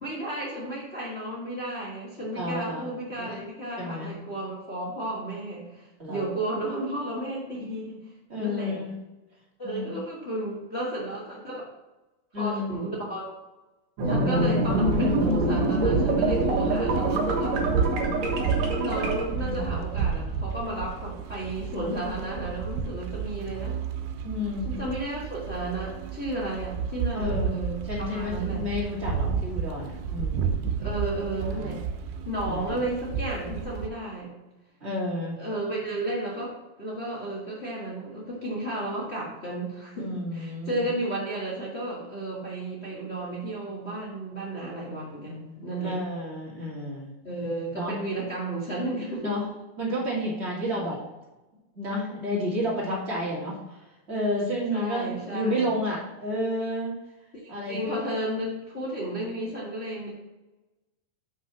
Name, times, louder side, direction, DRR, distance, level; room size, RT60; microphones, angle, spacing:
voice 1, 0.0-8.0 8.4-8.8 9.6-11.6 12.3-13.2 14.0-17.7 18.7-23.8 24.6-28.6 30.8-31.8 32.2-34.3 35.4-46.0 47.2-49.3 54.7-55.8 57.3-60.1, right 1 dB, 50° left, -6 dB, 0.7 m, -33 dB
voice 2, 2.4-2.9 3.1-3.3 3.8-4.1 6.0-6.2 8.3-8.9 9.6-9.9 12.3-12.7 19.4-19.8 21.7-22.1 24.2-24.8 27.1-27.6 27.9-30.5 31.4-31.8 32.5-32.8 34.8-35.4 40.0-40.8 45.8-47.1 47.8-47.9 49.2-49.4 49.8-51.0 51.8-53.8 54.1-56.9 57.5-58.0, left 1 dB, 20° right, -5 dB, 1.9 m, -31 dB
sound 1, 14.0-19.3, right 1 dB, 60° right, 2.2 m, -25 dB
sound 2, 14.6-33.9, right 6 dB, 90° right, 2.6 m, -31 dB
6.2 x 5.6 x 6.0 m, 1.0 s
omnidirectional pair, 4.3 m